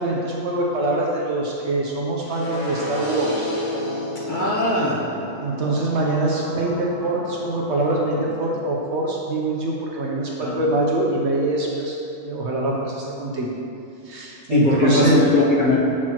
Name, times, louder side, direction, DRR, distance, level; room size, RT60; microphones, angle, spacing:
voice 1, 0.0-3.5 5.4-11.9 12.2-13.5 14.0-15.2, right 2 dB, 60° right, -2 dB, 0.9 m, -24 dB
sound 1, 2.2-8.2, left 1 dB, 70° left, 1.6 m, -32 dB
voice 2, 4.3-5.0 10.4-10.5 14.5-15.8, left 2 dB, 40° left, -6 dB, 1.0 m, -19 dB
7.4 x 6.2 x 2.9 m, 2.7 s
omnidirectional pair, 1.5 m